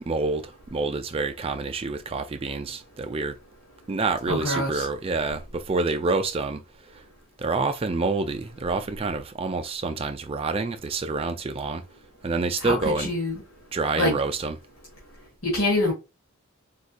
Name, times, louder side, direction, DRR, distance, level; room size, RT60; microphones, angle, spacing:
voice 1, 0.1-3.4 3.9-6.6 6.9-7.0 7.4-11.8 12.2-13.1 13.7-14.6, right 3 dB, 25° right, 0.3 m, -27 dB
voice 2, 4.3-4.9 12.6-13.4 14.0-14.2 15.4-15.9, left 1 dB, 75° left, 1.5 m, -25 dB
4.3 x 2.7 x 2.3 m
head